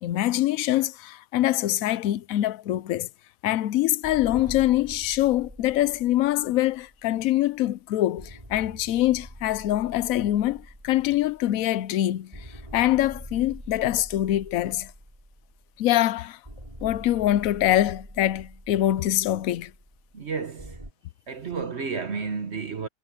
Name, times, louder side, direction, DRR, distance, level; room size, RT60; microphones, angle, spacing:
voice 1, 0.0-3.1 3.4-14.9 15.8-16.4 16.8-19.7, left 14 dB, 70° left, 1.0 m, -24 dB
sound 1, 4.0-7.6 8.2-12.0 12.3-15.9 16.4-20.9, right 1 dB, 20° right, 6.7 m, -44 dB
voice 2, 20.1-20.8 21.3-22.9, right 5 dB, 50° right, 1.2 m, -31 dB
omnidirectional pair, 1.6 m